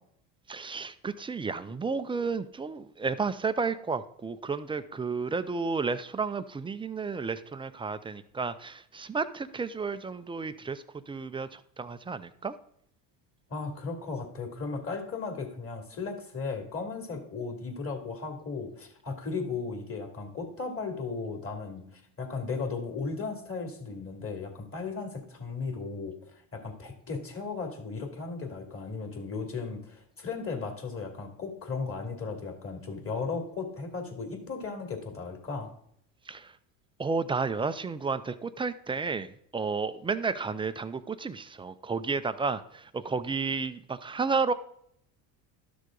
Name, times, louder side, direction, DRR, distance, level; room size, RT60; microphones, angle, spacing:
voice 1, 0.5-12.5 36.3-36.5 37.0-44.5, right 4 dB, 15° right, 12 dB, 0.3 m, -32 dB
voice 2, 13.5-26.1 26.5-35.7, left 4 dB, 30° left, 3 dB, 2.6 m, -36 dB
12.0 x 6.5 x 3.8 m, 0.68 s
supercardioid pair, 100°, 46 cm